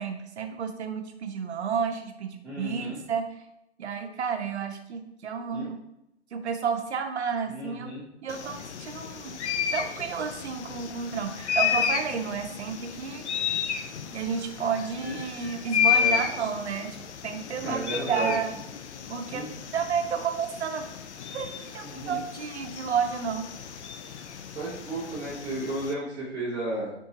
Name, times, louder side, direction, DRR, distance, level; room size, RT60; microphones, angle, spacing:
voice 1, 0.0-3.3 3.8-5.8 6.3-7.9 8.2-9.4 9.7-13.3 14.1-17.0 17.2-18.6 19.1-19.5 19.7-20.9 21.3-21.5 21.7-23.5, right 6 dB, 70° right, 6 dB, 0.6 m, -31 dB
voice 2, 2.4-3.0 5.5-5.7 7.5-8.0 15.0-15.2 15.8-16.2 17.6-18.3 19.3-19.5 21.8-22.2 24.5-26.9, right 1 dB, 5° right, -10 dB, 0.6 m, -33 dB
sound 1, 8.3-25.9, left 8 dB, 80° left, 0.5 m, -32 dB
3.7 x 2.7 x 2.8 m, 0.84 s
hypercardioid pair, 155°, 34 cm